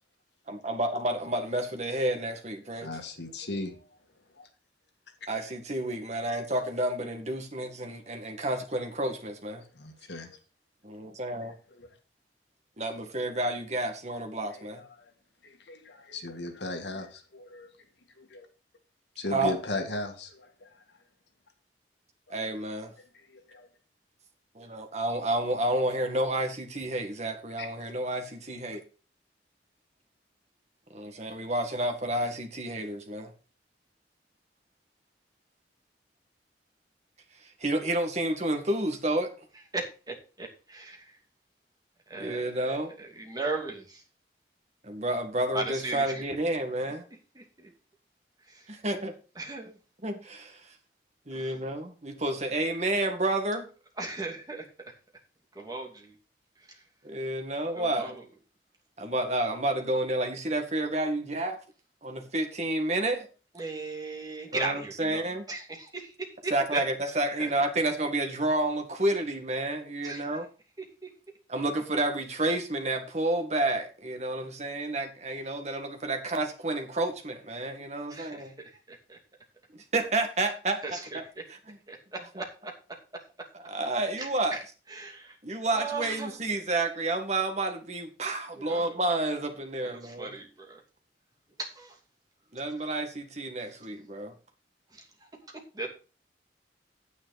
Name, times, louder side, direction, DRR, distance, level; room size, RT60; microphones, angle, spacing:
voice 1, 0.5-2.9 5.3-9.6 10.8-11.6 12.8-14.8 19.3-19.6 22.3-22.9 24.6-28.8 30.9-33.3 37.4-39.3 42.2-42.9 44.8-47.0 48.7-49.2 50.0-50.8 51.3-53.7 57.0-58.2 59.0-61.6 62.0-63.3 64.5-65.5 66.5-70.5 71.5-78.5 79.7-80.8 81.1-81.2 81.5-81.8 83.5-84.6 85.4-90.3 92.5-94.3, right 1 dB, 40° right, 6 dB, 1.9 m, -30 dB
voice 2, 2.8-3.9 4.3-4.5 9.8-10.4 11.7-11.9 14.5-15.1 15.4-17.7 18.2-18.5 19.2-20.8 22.4-22.6 23.1-23.7 27.6-27.7, left 2 dB, 75° left, 5 dB, 1.9 m, -37 dB
voice 3, 39.7-41.2 42.1-44.0 45.5-46.2 47.3-47.7 48.5-48.7 49.4-49.8 51.3-51.5 54.0-54.7 55.5-56.1 56.7-56.8 57.8-58.2 63.5-65.2 65.5-66.1 66.4-66.8 67.4-67.5 70.0-70.3 78.1-78.5 78.9-79.2 80.8-81.2 81.9-82.7 84.2-84.6 84.9-85.4 85.7-86.4 88.6-89.0 89.8-90.8 91.6-92.0 94.9-95.1 95.7-95.9, right 3 dB, 20° right, 0 dB, 2.6 m, -37 dB
9.5 x 9.4 x 4.1 m, 0.34 s
head